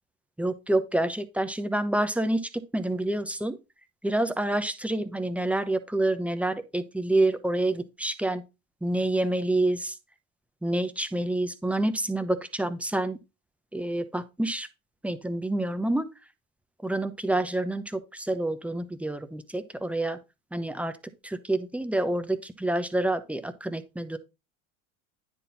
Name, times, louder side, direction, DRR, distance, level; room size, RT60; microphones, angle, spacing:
voice 1, 0.4-3.6 4.0-8.4 8.8-9.9 10.6-13.2 13.7-14.7 15.0-16.1 16.8-20.2 20.5-20.9 21.2-24.2, right 1 dB, 5° right, 0.9 m, -28 dB
9.9 x 4.1 x 4.0 m
hypercardioid pair, 95°, 39 cm